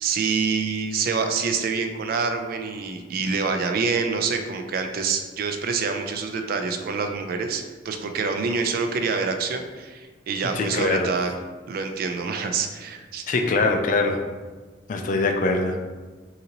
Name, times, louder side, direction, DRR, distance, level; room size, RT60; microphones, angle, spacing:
voice 1, 0.0-11.3 11.7-13.2, right 5 dB, 50° right, 6 dB, 0.3 m, -26 dB
voice 2, 10.5-11.1 13.3-14.2 14.9-15.8, left 3 dB, 45° left, 4 dB, 0.3 m, -23 dB
3.9 x 2.6 x 2.9 m, 1.3 s
head